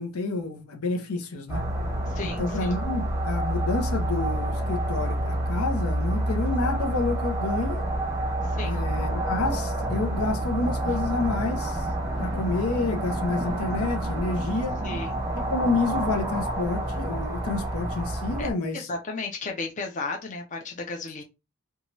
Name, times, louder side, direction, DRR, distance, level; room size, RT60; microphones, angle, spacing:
voice 1, 0.0-1.7 2.2-7.8 8.6-11.8 12.2-14.8 15.5-18.9, left 3 dB, 85° left, 0.7 m, -29 dB
sound 1, 1.5-18.5, right 1 dB, 15° right, 0.6 m, -28 dB
voice 2, 2.1-2.7 8.6-8.8 14.8-15.2 18.4-18.5 18.7-21.2, left 3 dB, 35° left, 0.5 m, -34 dB
2.7 x 2.3 x 2.9 m
head